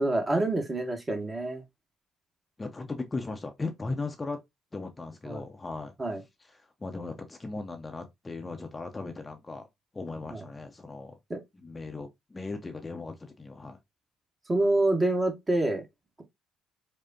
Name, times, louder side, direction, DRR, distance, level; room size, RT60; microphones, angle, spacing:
voice 1, 0.0-1.6 5.3-5.4 6.0-6.2 10.3-10.4 11.3-11.4 14.5-15.8, right 2 dB, 25° right, 1.0 m, -26 dB
voice 2, 2.6-4.4 4.7-5.9 6.4-9.7 9.9-11.2 11.5-13.8, left 3 dB, 25° left, 0.6 m, -37 dB
4.9 x 2.1 x 2.7 m
figure-of-eight pair, 45°, 0 cm